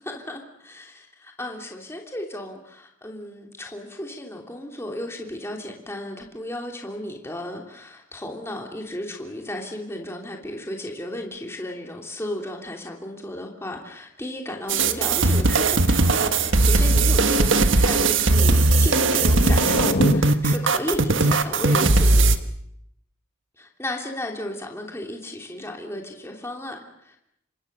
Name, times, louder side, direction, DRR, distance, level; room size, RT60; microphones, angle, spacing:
voice 1, 0.0-22.3 23.6-27.2, left 1 dB, 10° left, 1 dB, 3.0 m, -34 dB
sound 1, 14.7-22.4, right 2 dB, 65° right, 1.5 m, -18 dB
sound 2, 14.8-20.2, left 2 dB, 55° left, 1.2 m, -30 dB
28.0 x 24.5 x 6.8 m, 0.77 s
head